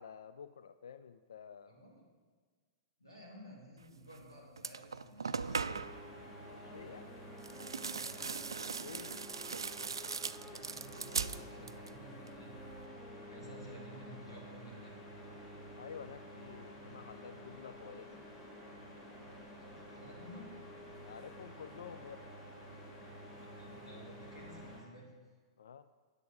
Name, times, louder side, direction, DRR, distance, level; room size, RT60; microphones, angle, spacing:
voice 1, 0.0-1.7 6.5-7.1 8.8-9.2 13.4-13.6 15.8-18.2 20.9-22.2 25.6-25.9, left 7 dB, 70° left, 11 dB, 0.3 m, -50 dB
voice 2, 1.7-2.0 3.0-5.8 8.0-8.3 10.5-12.6 13.3-14.9 19.6-20.5 23.4-25.1, equal, 90° left, -3 dB, 2.4 m, -54 dB
sound 1, 4.1-4.2 4.6-6.0 7.4-12.0 12.3-12.9, right 5 dB, 80° right, 0.3 m, -40 dB
sound 2, 5.4-24.8, equal, 40° left, 3.3 m, -51 dB
Wind instrument woodwind instrument, 6.4-14.7, left 2 dB, 15° left, 0.7 m, -59 dB
9.3 x 8.2 x 5.1 m, 1.5 s
figure-of-eight pair, 100°, 2 cm